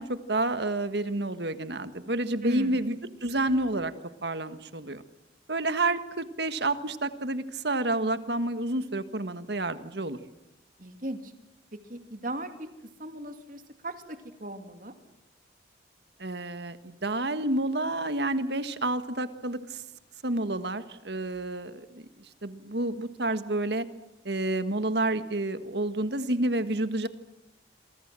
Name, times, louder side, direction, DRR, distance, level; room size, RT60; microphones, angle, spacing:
voice 1, 0.0-3.9 4.2-5.0 5.5-10.2 16.2-19.8 20.2-22.0 22.4-23.8 24.2-27.1, right 2 dB, 65° right, 11 dB, 1.6 m, -29 dB
voice 2, 2.4-2.8 10.8-11.3 11.7-12.7 13.0-14.9, right 1 dB, 45° right, 7 dB, 2.6 m, -37 dB
28.0 x 24.0 x 7.7 m, 0.89 s
head